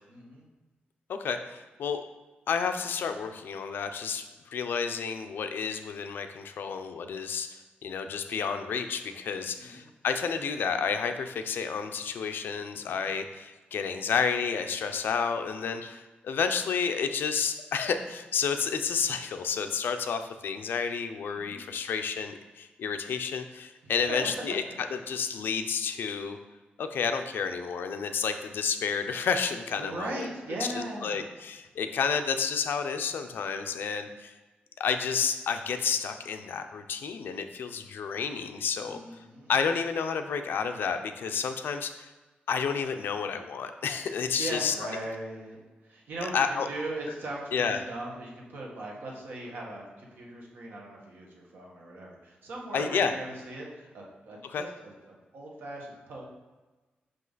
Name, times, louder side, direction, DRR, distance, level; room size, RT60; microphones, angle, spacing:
voice 1, 0.1-0.5 9.6-9.9 12.9-13.1 21.4-21.8 23.8-24.5 29.8-31.2 38.8-39.5 44.3-45.6 45.8-54.9 55.3-56.2, right 1 dB, 65° right, -2 dB, 1.5 m, -39 dB
voice 2, 1.1-2.0 2.5-7.5 7.8-26.4 26.8-30.3 30.6-34.3 34.8-39.0 39.5-42.1 42.5-44.9 46.3-46.7 47.5-47.8 52.7-53.2 54.5-54.7, left 6 dB, 70° left, 7 dB, 0.5 m, -30 dB
5.8 x 5.3 x 4.0 m, 1.2 s
wide cardioid pair, 180°, 4 cm